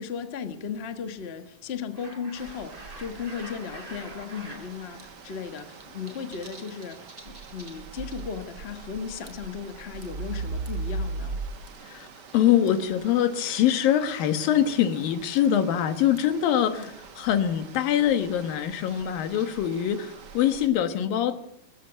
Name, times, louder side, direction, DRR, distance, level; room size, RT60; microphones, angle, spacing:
voice 1, 0.0-11.4 16.7-16.9, left 6 dB, 70° left, 8 dB, 0.6 m, -36 dB
sound 1, 1.9-4.6 5.0-5.1 5.4-8.4 8.7-8.8 9.3-9.6 10.0-10.9 11.7-12.3 12.7-12.8 13.5-13.6 14.4-14.6 14.9-15.0 15.4-15.5 15.8-15.9 16.2-16.3 16.8-16.9 17.2-17.3 17.6-17.9 18.3-19.9, right 1 dB, 10° right, 4.2 m, -47 dB
sound 2, 2.3-20.7, right 3 dB, 65° right, 1.0 m, -41 dB
voice 2, 12.3-16.9 17.2-21.4, left 10 dB, 90° left, 10 dB, 3.3 m, -24 dB
19.5 x 16.5 x 8.1 m, 0.73 s
omnidirectional pair, 3.9 m